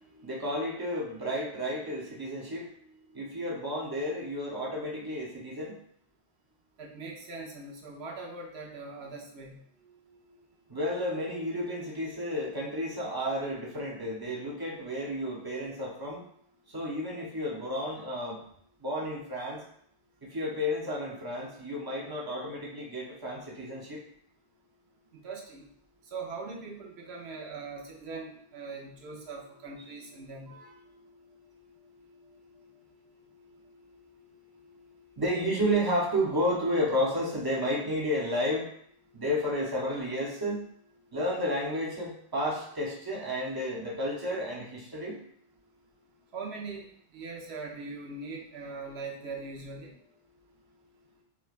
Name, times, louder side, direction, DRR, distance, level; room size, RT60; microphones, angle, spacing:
voice 1, 0.2-2.7 3.1-5.7 10.7-16.2 16.7-18.4 18.8-19.6 20.3-24.0 29.8-29.9 30.5-30.8 35.2-38.6 39.1-40.6 41.1-45.2, equal, 25° right, -3 dB, 0.7 m, -31 dB
voice 2, 6.8-9.6 25.1-25.7 26.1-30.6 46.3-46.9 47.1-49.9, right 4 dB, 85° right, -1 dB, 1.0 m, -41 dB
4.7 x 2.2 x 2.4 m, 0.66 s
omnidirectional pair, 1.1 m